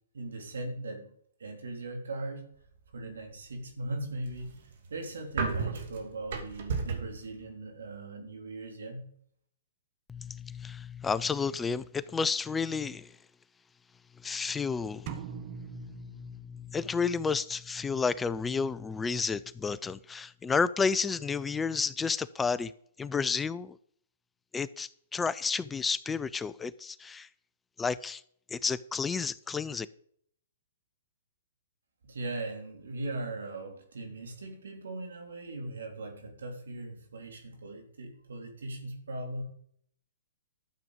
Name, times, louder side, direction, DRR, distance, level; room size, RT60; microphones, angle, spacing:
voice 1, 0.1-1.1 1.4-2.5 2.9-4.6 4.9-9.1 32.0-39.4, right 2 dB, 85° right, 3.7 m, -39 dB
sound 1, 4.2-7.2, right 4 dB, 60° right, 2.5 m, -33 dB
voice 2, 10.1-13.1 14.2-15.5 15.7-22.7 23.0-23.8 24.5-27.3 27.8-28.2 28.5-29.9, left 5 dB, 10° left, 0.4 m, -31 dB
sound 2, 15.1-17.0, right 10 dB, 40° right, 1.2 m, -43 dB
12.5 x 7.7 x 5.3 m
hypercardioid pair, 135°, 0 cm